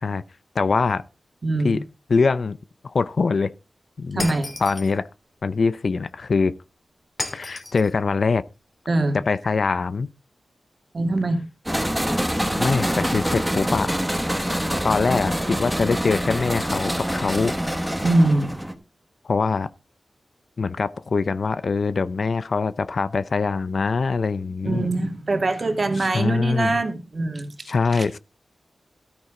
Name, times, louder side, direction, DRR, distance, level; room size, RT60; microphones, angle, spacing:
voice 1, 0.5-1.0 1.6-1.8 2.1-2.6 2.8-3.5 4.0-4.3 4.6-5.1 5.4-6.5 7.3-8.4 9.1-10.1 12.4-13.9 14.8-17.6 19.2-19.7 20.6-24.9 26.0-26.8 27.7-28.2, left 4 dB, 55° left, 0.6 m, -23 dB
voice 2, 1.4-1.8 4.1-4.5 8.9-9.2 10.9-11.4 18.0-18.5 24.6-27.5 27.9-28.1, right 2 dB, 40° right, 2.2 m, -23 dB
Shatter, 4.2-5.0 7.2-7.9, left 2 dB, 35° left, 2.9 m, -33 dB
sound 1, 11.7-18.7, equal, ahead, 1.5 m, -25 dB
13.5 x 9.0 x 3.8 m
wide cardioid pair, 145°, 0 cm